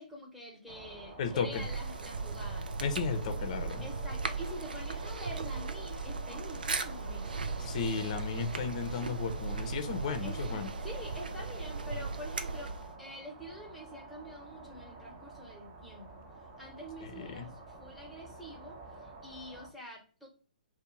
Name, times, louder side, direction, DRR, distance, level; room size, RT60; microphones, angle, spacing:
voice 1, 0.0-2.8 3.8-7.5 10.2-12.7 13.0-16.2 16.6-18.8 19.0-20.3, equal, ahead, 0.9 m, -46 dB
sound 1, 0.7-19.7, right 3 dB, 30° right, 0.8 m, -49 dB
voice 2, 1.2-1.6 2.8-3.9 7.6-10.7 17.2-17.5, left 5 dB, 45° left, 0.5 m, -34 dB
sound 2, 1.5-12.9, right 4 dB, 80° right, 0.4 m, -37 dB
2.6 x 2.1 x 2.8 m
figure-of-eight pair, 125°, 5 cm